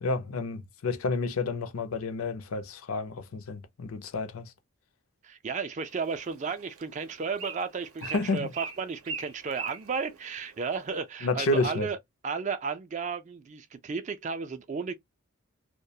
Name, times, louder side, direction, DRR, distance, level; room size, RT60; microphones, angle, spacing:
voice 1, 0.0-4.5 8.0-8.5 11.2-11.9, left 3 dB, 80° left, 0.5 m, -30 dB
voice 2, 5.2-12.0 12.2-14.9, right 5 dB, 35° right, 0.3 m, -33 dB
Bird, 5.8-11.0, right 5 dB, 85° right, 0.6 m, -43 dB
2.3 x 2.1 x 2.7 m
head